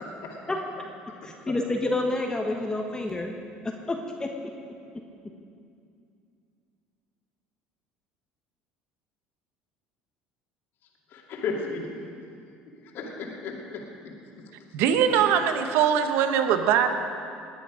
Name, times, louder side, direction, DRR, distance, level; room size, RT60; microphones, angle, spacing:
voice 1, 1.2-3.3 3.9-4.3, left 2 dB, 20° left, 2 dB, 1.4 m, -28 dB
voice 2, 11.1-11.9 12.8-13.8, left 4 dB, 60° left, -1 dB, 2.5 m, -34 dB
voice 3, 14.7-16.9, right 8 dB, 70° right, 8 dB, 1.0 m, -22 dB
20.0 x 9.2 x 5.1 m, 2.4 s
hypercardioid pair, 75°, 4 cm